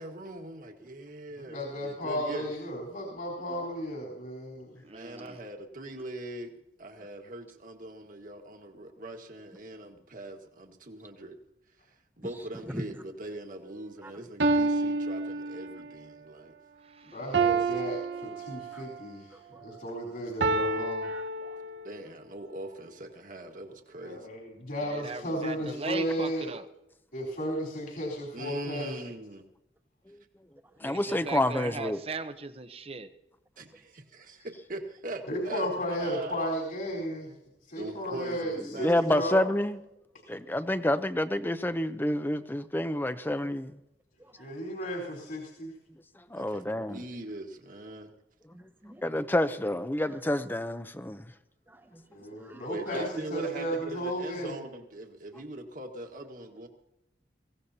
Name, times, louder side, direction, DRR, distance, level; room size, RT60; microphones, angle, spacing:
voice 1, 0.0-2.5 4.9-6.5 6.8-11.4 12.2-16.5 17.6-17.7 21.8-24.3 28.3-29.4 33.6-35.7 35.9-36.5 37.8-39.0 46.3-48.1 52.7-56.7, right 1 dB, 50° right, 1.7 m, -41 dB
voice 2, 1.4-4.7 17.1-19.4 19.6-21.1 24.0-26.5 27.1-28.9 35.3-37.3 37.6-39.5 44.4-45.7 52.1-54.6, equal, 65° left, 4.0 m, -34 dB
voice 3, 4.8-5.4 16.8-17.2 24.8-26.7 30.8-33.1, right 3 dB, 35° right, 0.8 m, -38 dB
sound 1, 13.6-13.8 14.4-16.0 17.3-19.0 20.4-22.0, right 3 dB, 85° right, 0.9 m, -29 dB
voice 4, 21.0-21.6 22.0-22.1 44.2-44.5 48.5-49.3 51.7-52.0 52.4-53.0, equal, 10° right, 1.0 m, -45 dB
voice 5, 30.8-32.0 38.7-39.8 40.3-43.7 46.3-47.0 49.0-51.2, left 1 dB, 10° left, 0.6 m, -28 dB
23.0 x 16.5 x 2.8 m
head